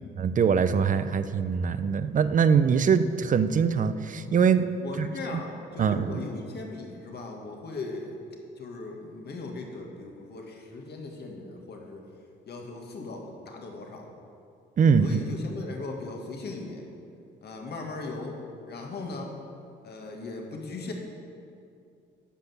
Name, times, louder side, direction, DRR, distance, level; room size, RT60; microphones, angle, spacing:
voice 1, 0.2-4.7 5.0-5.1 5.8-6.1 14.8-15.2, right 6 dB, 40° right, 12 dB, 0.6 m, -23 dB
voice 2, 4.8-8.2 8.5-12.1 12.5-14.1 15.0-16.8 17.4-18.4 18.7-19.4 19.8-20.9, left 3 dB, 55° left, 1 dB, 1.8 m, -38 dB
10.0 x 6.2 x 7.1 m, 2.5 s
cardioid pair, 90°, 20 cm